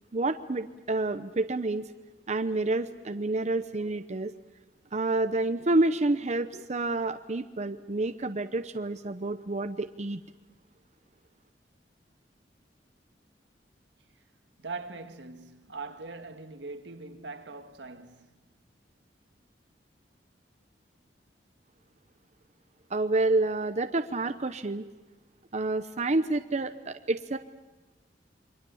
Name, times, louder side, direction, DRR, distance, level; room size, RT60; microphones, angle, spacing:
voice 1, 0.1-1.8 2.3-4.3 4.9-10.2 22.9-24.8 25.5-27.4, right 2 dB, 40° right, 0.8 m, -28 dB
voice 2, 14.6-18.4, right 3 dB, 85° right, 1.8 m, -41 dB
28.5 x 23.5 x 7.1 m
head